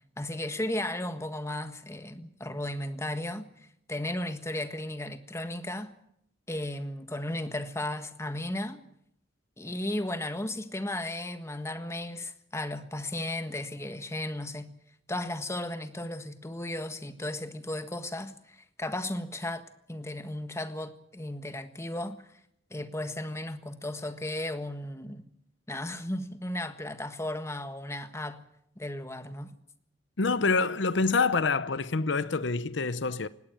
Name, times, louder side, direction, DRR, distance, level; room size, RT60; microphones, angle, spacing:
voice 1, 0.2-3.5 3.9-5.9 6.5-8.9 9.6-14.7 15.1-19.6 19.9-22.2 22.7-25.3 25.7-28.4 28.8-29.5, left 1 dB, 15° left, 1.5 m, -35 dB
voice 2, 30.2-33.3, left 4 dB, 75° left, 0.8 m, -26 dB
19.5 x 17.5 x 9.0 m
head